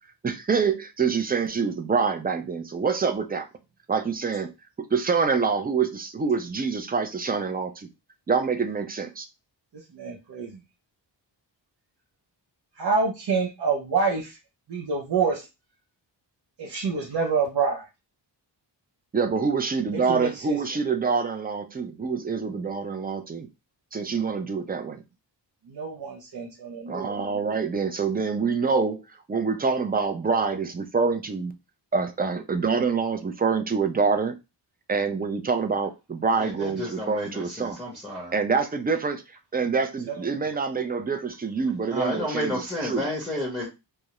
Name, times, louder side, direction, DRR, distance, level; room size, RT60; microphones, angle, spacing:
voice 1, 0.2-3.5 3.9-4.5 4.9-7.9 8.3-9.3 19.1-23.5 23.9-25.0 26.9-29.0 29.3-31.5 31.9-34.3 34.9-37.8 38.3-39.2 39.5-43.1, right 5 dB, 25° right, 0.3 m, -26 dB
voice 2, 9.9-10.6 12.8-14.4 14.7-15.5 16.6-17.9 19.9-20.6 25.7-27.2 40.1-40.2, right 5 dB, 65° right, 0.6 m, -27 dB
voice 3, 36.4-38.3 41.9-43.7, left 1 dB, ahead, 0.8 m, -31 dB
2.3 x 2.0 x 2.9 m
wide cardioid pair, 95°, 44 cm